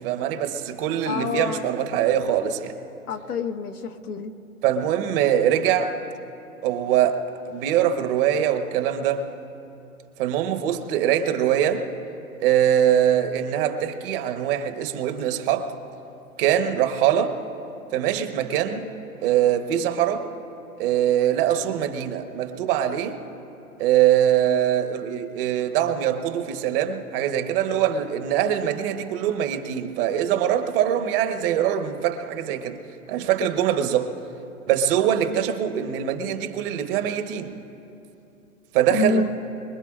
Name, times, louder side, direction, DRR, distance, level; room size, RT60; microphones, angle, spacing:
voice 1, 0.0-2.7 4.6-5.9 6.6-7.2 7.4-9.2 10.2-11.8 12.4-15.7 16.4-17.4 17.9-18.9 19.2-20.2 20.8-23.2 23.8-32.8 33.1-34.1 34.7-37.6 38.7-39.2, right 10 dB, 40° right, 7 dB, 1.1 m, -23 dB
voice 2, 1.0-1.7 3.1-4.3 38.9-39.3, left 3 dB, 90° left, 3 dB, 1.3 m, -27 dB
24.0 x 21.0 x 2.5 m, 2.9 s
hypercardioid pair, 125°, 43 cm